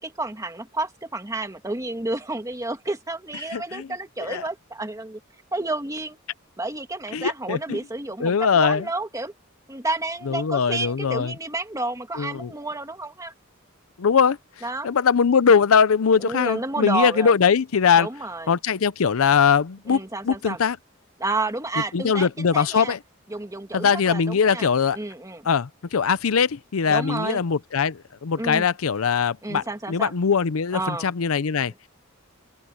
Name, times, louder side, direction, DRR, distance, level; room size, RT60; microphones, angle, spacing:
voice 1, 0.0-5.2 5.5-6.2 6.6-9.3 9.7-13.3 14.6-14.9 16.2-17.4 18.0-18.6 19.9-20.6 21.2-23.0 23.3-25.5 26.9-27.4 28.4-28.7 29.4-30.2 30.7-31.1, right 2 dB, 15° right, 2.0 m, -30 dB
voice 2, 3.5-3.9 4.2-4.4 7.1-7.8 8.2-8.9 10.3-11.3 12.2-12.5 14.0-14.4 14.8-18.1 18.5-20.8 21.9-23.0 23.7-25.0 25.5-31.7, left 6 dB, 85° left, 0.6 m, -21 dB
open air
head